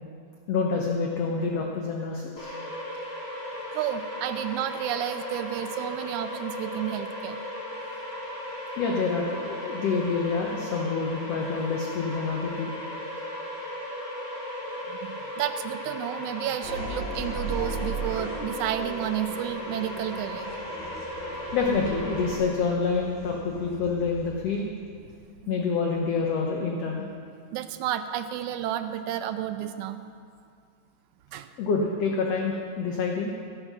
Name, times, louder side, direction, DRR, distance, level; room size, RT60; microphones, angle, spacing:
voice 1, 0.5-2.6 8.8-12.7 20.8-20.9 21.5-24.7 25.5-27.1 31.6-33.3, left 4 dB, 65° left, 0 dB, 1.8 m, -27 dB
sound 1, 2.4-22.4, left 1 dB, 40° left, 3.1 m, -36 dB
voice 2, 3.7-7.4 14.9-20.6 25.4-25.5 27.5-30.0 31.3-31.5, right 11 dB, 80° right, 9 dB, 1.9 m, -31 dB
sound 2, 16.6-25.2, right 2 dB, 20° left, 4.1 m, -38 dB
15.0 x 9.8 x 6.1 m, 2.3 s
omnidirectional pair, 3.7 m